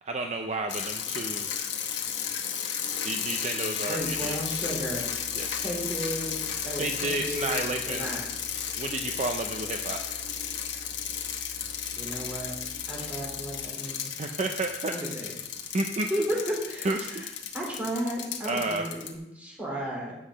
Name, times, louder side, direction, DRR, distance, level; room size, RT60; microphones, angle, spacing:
voice 1, 0.0-1.5 3.0-4.4 5.3-5.6 6.7-8.1 8.8-10.0 14.2-14.9 15.7-16.1 16.8-17.2 18.4-18.9, right 2 dB, 40° right, 4 dB, 0.6 m, -31 dB
sound 1, 0.7-19.1, left 8 dB, 90° left, 1.1 m, -34 dB
voice 2, 3.9-8.2 11.9-12.5 12.9-14.1 14.9-15.4 16.1-17.3 17.5-20.2, equal, 10° right, -4 dB, 3.2 m, -34 dB
sound 2, 4.0-13.7, left 1 dB, 40° left, 1.2 m, -49 dB
8.5 x 5.8 x 6.2 m, 0.88 s
head